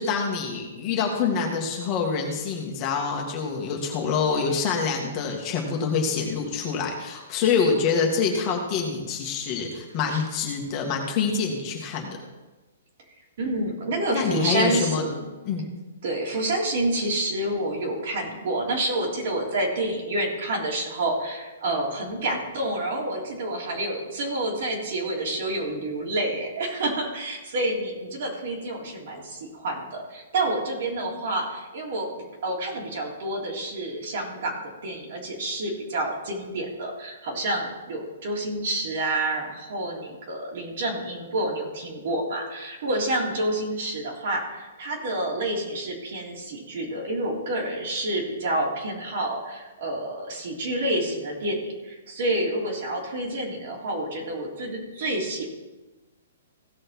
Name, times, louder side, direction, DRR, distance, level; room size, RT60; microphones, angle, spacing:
voice 1, 0.0-12.2 14.1-15.0 15.5-15.7, left 5 dB, 30° left, 0 dB, 1.9 m, -26 dB
voice 2, 13.4-15.3 16.0-55.5, right 1 dB, 55° right, -2 dB, 3.4 m, -28 dB
16.5 x 6.4 x 4.6 m, 1.2 s
hypercardioid pair, 160°, 0 cm